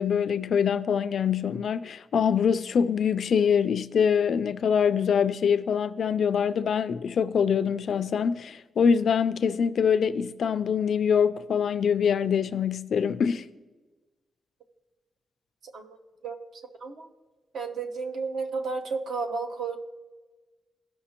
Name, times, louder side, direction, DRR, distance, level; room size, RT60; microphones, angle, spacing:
voice 1, 0.0-13.5, left 7 dB, 55° left, 0.3 m, -24 dB
voice 2, 15.6-16.0 16.2-17.1 17.5-19.8, right 4 dB, 65° right, 0.8 m, -33 dB
16.5 x 5.6 x 2.9 m
wide cardioid pair, 165°, 0 cm